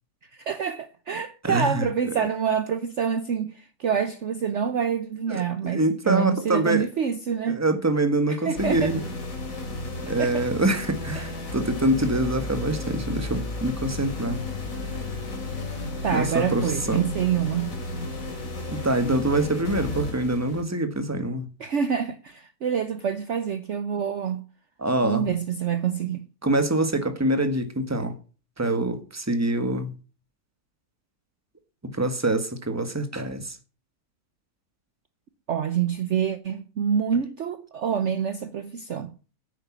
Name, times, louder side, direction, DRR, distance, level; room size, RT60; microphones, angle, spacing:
voice 1, 0.4-7.6 8.3-8.9 10.2-10.5 11.2-11.3 16.0-17.8 21.6-24.5 25.0-26.2 35.5-39.1, right 7 dB, 55° right, 1.0 m, -27 dB
voice 2, 1.4-1.9 2.2-2.3 5.3-6.9 7.5-9.0 9.7-9.8 10.0-14.4 16.1-17.1 18.7-21.5 24.8-25.3 26.4-28.2 28.6-30.0 31.9-33.6, right 1 dB, 10° right, 1.4 m, -25 dB
sound 1, 8.6-20.6, left 2 dB, 60° left, 3.1 m, -33 dB
10.0 x 8.9 x 7.3 m
omnidirectional pair, 1.7 m